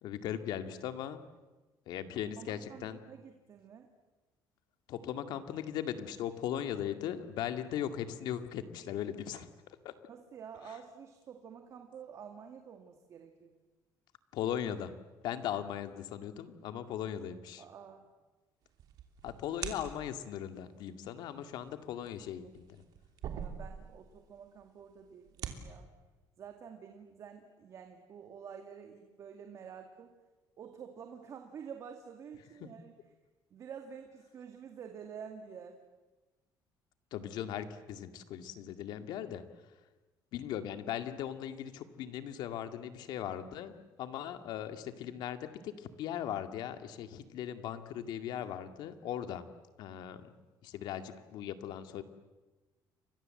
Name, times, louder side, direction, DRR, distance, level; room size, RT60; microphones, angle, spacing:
voice 1, 0.0-1.2 1.9-3.0 4.9-9.5 9.8-9.9 14.3-14.9 15.2-17.6 19.2-22.8 32.6-32.7 37.1-39.4 40.3-49.4 49.8-50.3 50.6-52.0, left 10 dB, 70° left, 8 dB, 2.1 m, -38 dB
voice 2, 2.2-3.9 10.1-13.6 17.6-18.1 23.3-25.9 26.4-30.1 30.6-32.9 33.5-35.8, right 7 dB, 40° right, 5 dB, 2.2 m, -49 dB
sound 1, 18.7-20.3 21.7-24.2 24.4-24.5 25.1-25.6, right 8 dB, 60° right, 3.0 m, -42 dB
30.0 x 24.0 x 7.8 m, 1.2 s
cardioid pair, 160°, 8 cm